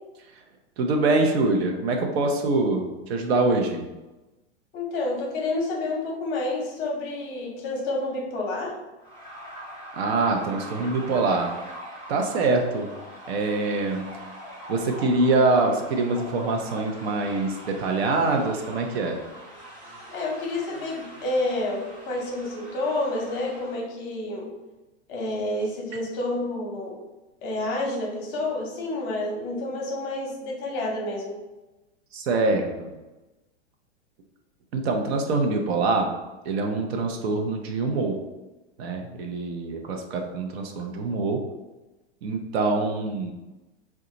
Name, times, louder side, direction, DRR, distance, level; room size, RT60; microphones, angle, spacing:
voice 1, 0.8-3.9 9.9-11.5 12.1-12.9 13.3-14.1 14.7-19.2 32.1-32.9 34.7-36.1 36.4-38.2 38.8-41.4 42.2-43.3, right 3 dB, 60° right, 3 dB, 0.6 m, -24 dB
voice 2, 4.7-8.7 20.1-24.5 25.1-26.9 27.4-31.3, left 2 dB, 30° left, -2 dB, 0.8 m, -29 dB
sound 1, 9.0-23.8, equal, 15° right, 0.9 m, -42 dB
2.8 x 2.3 x 3.8 m, 1.1 s
hypercardioid pair, 135°, 36 cm